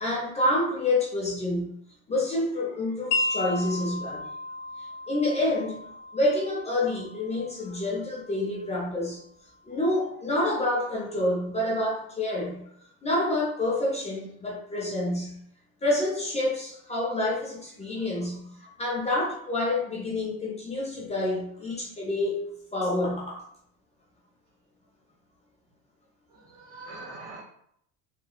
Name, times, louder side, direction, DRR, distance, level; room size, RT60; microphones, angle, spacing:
voice 1, 0.0-1.7 2.1-4.3 4.8-5.9 6.1-9.2 9.6-12.6 13.0-15.4 15.8-23.4, left 1 dB, 15° left, 0.4 m, -28 dB
Wind chime, 3.1-9.2, left 2 dB, 90° left, 0.6 m, -35 dB
voice 2, 26.3-27.4, right 2 dB, 75° right, 1.1 m, -43 dB
2.8 x 2.2 x 2.4 m
supercardioid pair, 125°, 45 cm